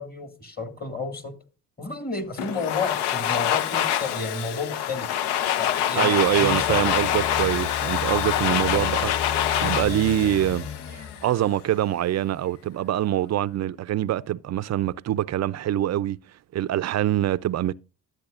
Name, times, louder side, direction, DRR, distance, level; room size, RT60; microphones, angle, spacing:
voice 1, 0.0-1.4 1.8-5.1 5.6-6.8, left 3 dB, 20° left, 1.7 m, -31 dB
Domestic sounds home sounds, 2.4-11.3, left 11 dB, 75° left, 0.7 m, -26 dB
voice 2, 5.9-16.2 16.5-17.7, right 12 dB, 40° right, 0.4 m, -25 dB
sound 1, 6.1-11.3, left 7 dB, 40° left, 3.5 m, -35 dB
12.0 x 8.0 x 2.4 m
hypercardioid pair, 60°, 41 cm